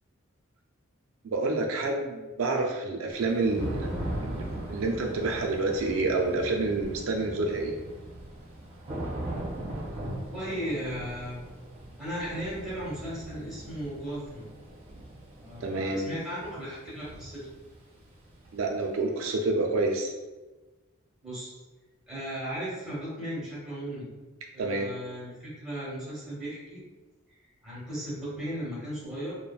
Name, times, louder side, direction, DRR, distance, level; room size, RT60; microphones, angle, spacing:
voice 1, 1.2-7.7 15.6-16.1 18.5-20.1 24.6-24.9, right 3 dB, 75° right, 1 dB, 0.4 m, -28 dB
Thunder / Rain, 3.1-18.9, right 1 dB, 30° right, 0.6 m, -39 dB
voice 2, 10.3-11.4 12.0-14.5 15.4-17.5 21.2-21.5 22.1-24.1 24.5-26.8 27.6-29.4, equal, ahead, -8 dB, 1.0 m, -36 dB
3.1 x 2.1 x 2.3 m, 1.2 s
head